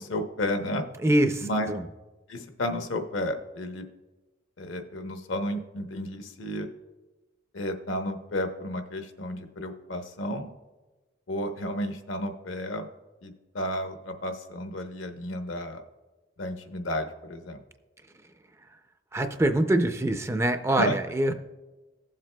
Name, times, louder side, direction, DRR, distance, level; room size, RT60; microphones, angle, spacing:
voice 1, 0.0-0.9 1.4-1.7 2.3-3.8 4.6-6.7 7.5-10.5 11.3-12.9 13.2-15.8 16.4-17.6 20.7-21.0, left 1 dB, 75° left, 6 dB, 0.9 m, -32 dB
voice 2, 1.0-1.8 19.1-21.3, right 1 dB, 15° right, 7 dB, 0.4 m, -24 dB
16.0 x 7.4 x 2.2 m, 1.2 s
head